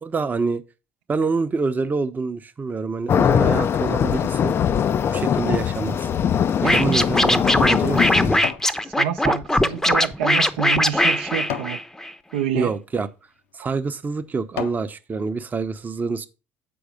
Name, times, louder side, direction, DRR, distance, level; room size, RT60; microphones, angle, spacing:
voice 1, 0.0-0.6 1.1-4.5 5.1-6.1 6.6-8.4 12.5-13.1 13.5-16.3, right 4 dB, 25° right, 0.7 m, -26 dB
sound 1, 3.1-8.4, left 8 dB, 40° left, 0.4 m, -21 dB
Scratching (performance technique), 6.6-12.1, left 1 dB, 5° left, 0.7 m, -20 dB
voice 2, 6.6-7.0 8.8-11.8 12.3-12.7, right 10 dB, 75° right, 0.6 m, -27 dB
sound 2, 8.3-8.8 9.2-11.8 12.4-12.7 13.4-13.5 14.0-14.9 15.4-15.5, left 8 dB, 75° left, 0.8 m, -36 dB
7.8 x 4.8 x 5.1 m
hypercardioid pair, 60°, 6 cm